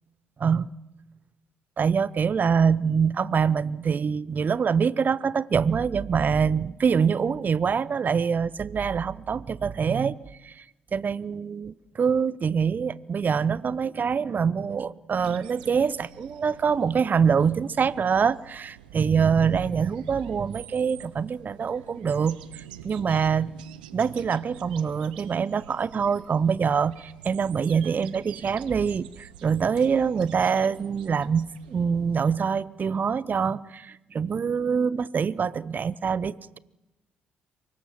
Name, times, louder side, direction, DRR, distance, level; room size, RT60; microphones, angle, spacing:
voice 1, 0.4-0.7 1.8-10.2 10.4-10.5 10.9-23.5 23.9-36.6, right 6 dB, 40° right, 0.7 m, -25 dB
sound 1, 15.2-32.3, right 12 dB, 80° right, 0.8 m, -48 dB
24.0 x 20.0 x 6.0 m
figure-of-eight pair, 45°, 5 cm